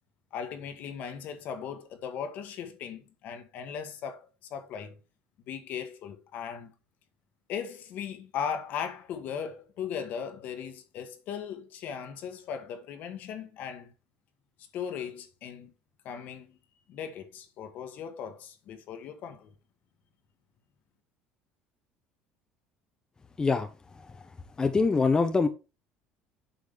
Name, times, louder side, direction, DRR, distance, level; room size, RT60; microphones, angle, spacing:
voice 1, 0.3-5.0 5.5-6.7 7.5-13.9 14.7-15.7 16.0-16.6 16.9-19.5, left 7 dB, 60° left, 1.5 m, -38 dB
voice 2, 24.6-25.5, left 4 dB, 20° left, 0.8 m, -23 dB
8.4 x 4.9 x 3.6 m
supercardioid pair, 95°, 3 cm